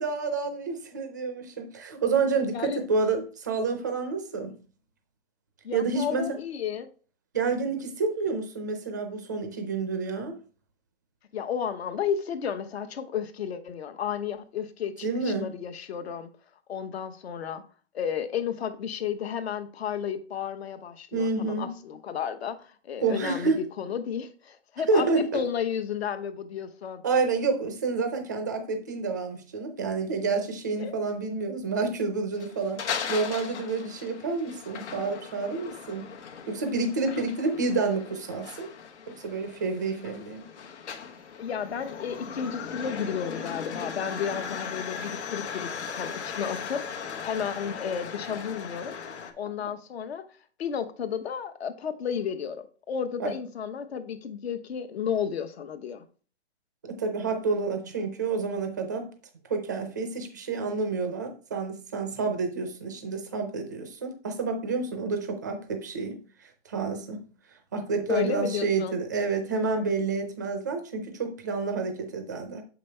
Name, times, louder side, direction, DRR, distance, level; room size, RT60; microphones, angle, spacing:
voice 1, 0.0-4.6 5.7-6.3 7.3-10.3 15.0-15.5 21.1-21.7 23.0-23.6 24.9-25.4 27.0-36.1 36.5-38.7 39.1-40.5 53.2-53.3 56.8-59.1 59.5-66.2 66.7-67.2 67.7-72.6, right 4 dB, 15° right, 0.4 m, -29 dB
voice 2, 2.5-2.8 5.6-6.9 11.3-16.3 16.7-17.6 17.9-27.0 30.8-30.9 37.1-37.2 41.4-46.9 47.2-48.9 49.4-50.2 50.6-56.0 68.1-68.9, left 8 dB, 65° left, 1.0 m, -32 dB
sound 1, 32.3-49.3, left 6 dB, 85° left, 1.3 m, -38 dB
6.9 x 5.1 x 3.2 m
hypercardioid pair, 175°, 34 cm